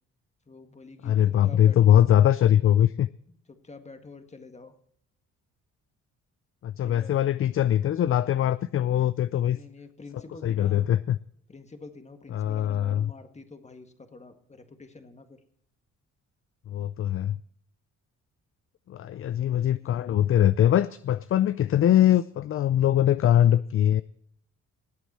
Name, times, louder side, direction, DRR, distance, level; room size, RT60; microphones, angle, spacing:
voice 1, 0.5-2.1 3.5-4.8 6.8-7.1 9.4-10.9 11.5-15.4 19.1-20.3, left 3 dB, 20° left, 1.8 m, -48 dB
voice 2, 1.0-3.1 6.6-9.6 10.4-11.2 12.3-13.1 16.7-17.4 18.9-24.0, left 11 dB, 45° left, 0.5 m, -22 dB
18.5 x 8.2 x 4.4 m
cardioid pair, 90°, 30 cm